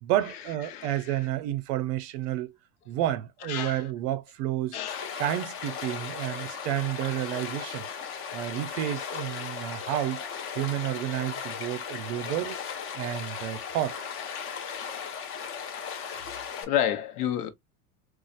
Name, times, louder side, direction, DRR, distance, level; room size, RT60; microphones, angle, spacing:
voice 1, 0.0-2.5 2.9-4.8 5.2-7.9 8.3-10.2 10.5-12.6 12.9-14.0, right 13 dB, 50° right, 0.5 m, -30 dB
voice 2, 0.7-1.2 3.5-3.8 4.7-5.1 14.3-14.6 15.8-16.2 16.6-17.5, left 10 dB, 80° left, 1.0 m, -31 dB
Stream, 4.9-16.6, left 7 dB, 30° left, 0.6 m, -37 dB
4.0 x 2.4 x 2.4 m
supercardioid pair, 145°, 45 cm